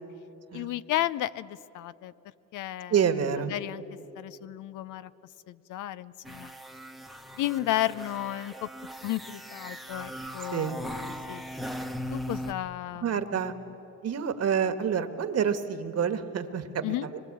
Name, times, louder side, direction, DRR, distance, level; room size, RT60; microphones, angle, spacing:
voice 1, 0.5-2.1 2.5-3.1 3.3-3.8 4.2-5.1 5.5-6.5 7.4-8.7 9.0-11.4 12.1-13.5 16.8-17.1, left 14 dB, 85° left, 16 dB, 0.6 m, -33 dB
voice 2, 2.9-3.5 10.5-10.8 13.0-13.5 14.0-17.1, right 7 dB, 55° right, 9 dB, 1.5 m, -28 dB
sound 1, 6.3-12.5, equal, ahead, 1.0 m, -39 dB
24.5 x 22.0 x 8.5 m, 2.9 s
cardioid pair, 90°, 30 cm